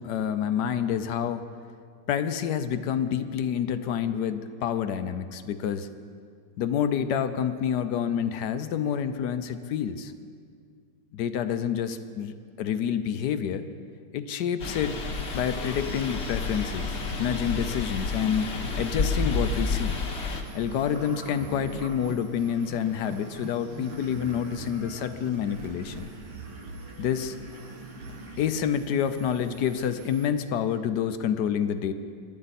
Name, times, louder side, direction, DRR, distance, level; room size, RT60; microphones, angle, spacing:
voice 1, 0.0-1.5 2.1-5.9 6.6-10.1 11.1-13.7 14.1-15.0 15.3-18.5 18.8-20.0 20.5-26.1 27.0-27.3 28.4-31.9, left 8 dB, 70° left, 10 dB, 1.2 m, -28 dB
sound 1, 14.6-20.4, left 4 dB, 40° left, 1.2 m, -30 dB
sound 2, 15.1-30.3, right 4 dB, 90° right, 1.9 m, -47 dB
sound 3, 15.5-28.4, right 1 dB, 20° right, 1.5 m, -43 dB
24.0 x 12.0 x 4.2 m, 2.2 s
omnidirectional pair, 2.0 m